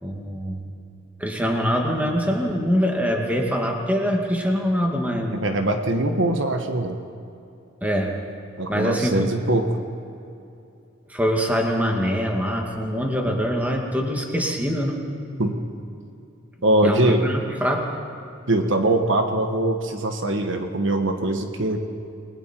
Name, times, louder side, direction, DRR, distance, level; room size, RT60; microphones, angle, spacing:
voice 1, 0.0-0.6 1.2-5.4 7.8-8.1 8.7-9.2 11.1-15.0 16.8-18.0, equal, 10° right, 0 dB, 2.2 m, -24 dB
voice 2, 5.3-7.0 8.6-9.7 15.4-15.5 16.6-17.2 18.5-21.8, right 1 dB, 65° right, 5 dB, 1.4 m, -22 dB
29.0 x 20.5 x 4.6 m, 2.7 s
head